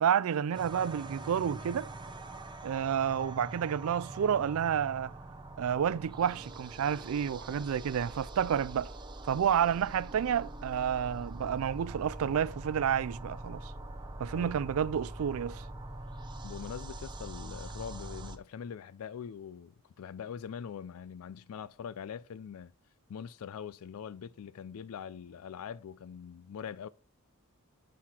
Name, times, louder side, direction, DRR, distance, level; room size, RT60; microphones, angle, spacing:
voice 1, 0.0-1.9 2.6-5.1 5.6-8.9 9.3-13.6 14.2-15.6, right 8 dB, 70° right, 0.3 m, -30 dB
sound 1, 0.5-18.4, right 2 dB, 20° right, 0.7 m, -44 dB
voice 2, 16.4-22.7 23.1-26.9, left 7 dB, 75° left, 0.4 m, -43 dB
6.3 x 5.7 x 4.3 m
head